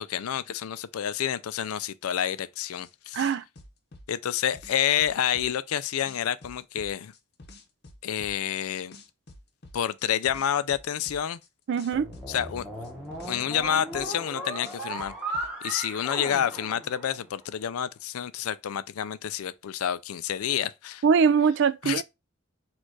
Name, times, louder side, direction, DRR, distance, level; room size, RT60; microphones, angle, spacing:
voice 1, 0.0-3.3 4.1-7.1 8.0-9.0 9.7-11.4 12.3-12.7 13.2-21.0 21.8-22.0, left 9 dB, 80° left, 0.4 m, -29 dB
sound 1, 2.8-2.9 3.2-5.8 6.1-8.6 8.9-11.5 11.8-14.3 14.6-15.5, left 2 dB, 50° left, 0.8 m, -49 dB
voice 2, 3.1-3.4 11.7-12.1 21.0-22.0, right 6 dB, 55° right, 0.3 m, -22 dB
sound 2, 11.9-17.4, right 1 dB, 5° right, 1.0 m, -37 dB
4.4 x 2.5 x 4.6 m
head